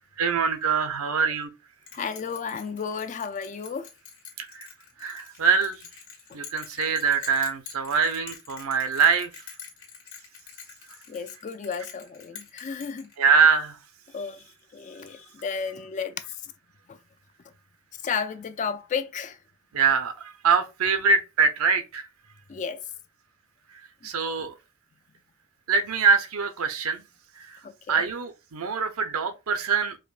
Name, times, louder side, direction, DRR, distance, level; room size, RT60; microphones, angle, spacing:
voice 1, 0.2-1.5 4.4-4.7 5.0-5.9 6.3-9.4 13.2-13.8 19.7-22.1 24.0-24.5 25.7-27.0 27.4-27.6 27.9-30.0, right 5 dB, 80° right, 0.6 m, -24 dB
Bell, 1.9-13.5, left 7 dB, 60° left, 1.4 m, -45 dB
voice 2, 1.9-3.9 6.3-6.4 11.1-13.1 14.1-14.4 14.7-16.1 16.4-16.5 16.9-17.0 18.0-19.4 22.5-22.8 27.6-28.0, left 6 dB, 35° left, 0.3 m, -33 dB
4.9 x 2.2 x 2.4 m
head